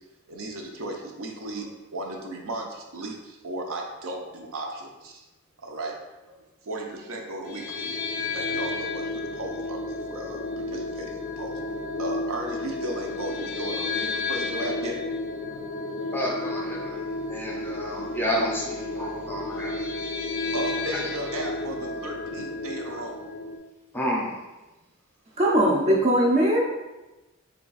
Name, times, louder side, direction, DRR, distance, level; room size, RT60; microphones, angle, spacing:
voice 1, 0.3-5.2 5.6-6.0 6.7-8.0 8.3-11.6 12.0-15.0 15.5-15.7 18.9-19.1 20.5-23.2, right 1 dB, 70° right, 1 dB, 0.6 m, -35 dB
sound 1, 7.5-23.6, left 3 dB, 45° left, 0.4 m, -32 dB
voice 2, 16.1-17.0 17.3-19.7 20.9-21.0 23.9-24.3, equal, 10° left, -3 dB, 0.7 m, -30 dB
voice 3, 25.4-26.6, right 1 dB, 30° right, -3 dB, 0.5 m, -20 dB
3.3 x 2.3 x 3.9 m, 1.1 s
head